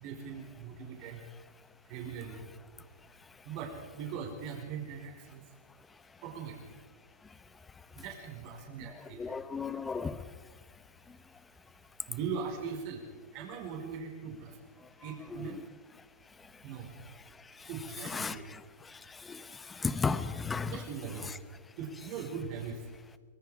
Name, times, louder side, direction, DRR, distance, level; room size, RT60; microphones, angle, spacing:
voice 1, 0.0-1.2 1.9-2.4 3.4-5.4 6.2-6.5 7.9-9.2 12.1-13.0 13.3-14.5 15.0-15.6 16.6-16.9 17.7-18.4 20.6-21.3 21.8-22.8, right 6 dB, 45° right, 5.0 m, -40 dB
voice 2, 9.1-10.3 15.3-15.5 17.4-17.7 18.0-20.8, left 5 dB, 10° left, 0.9 m, -35 dB
24.0 x 22.0 x 5.0 m
hypercardioid pair, 145°, 0 cm